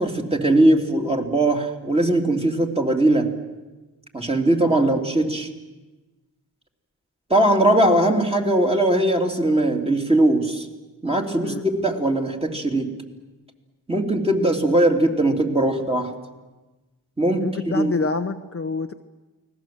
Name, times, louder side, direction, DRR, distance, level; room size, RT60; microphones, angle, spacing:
voice 1, 0.0-3.3 4.1-5.5 7.3-10.7 11.0-12.9 13.9-16.1 17.2-17.9, right 1 dB, 15° right, 2 dB, 3.1 m, -20 dB
voice 2, 17.4-18.9, left 4 dB, 35° left, 6 dB, 1.0 m, -27 dB
29.5 x 20.0 x 7.8 m, 1.2 s
cardioid pair, 90°, 39 cm